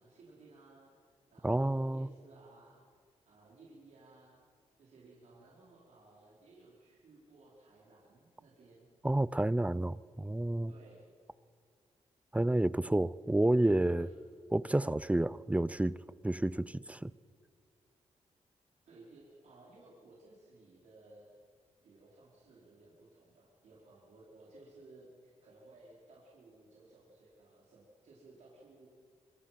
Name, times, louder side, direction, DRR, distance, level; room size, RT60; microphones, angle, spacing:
voice 1, 0.0-4.4 4.8-8.9 10.7-11.1 14.0-14.2 18.8-21.3 21.8-28.9, right 2 dB, 75° right, 4.6 m, -58 dB
voice 2, 1.4-2.1 9.0-10.7 12.3-14.1 14.5-17.1, right 1 dB, 10° right, 0.6 m, -30 dB
25.5 x 25.0 x 6.0 m
cardioid pair, 70°, 12 cm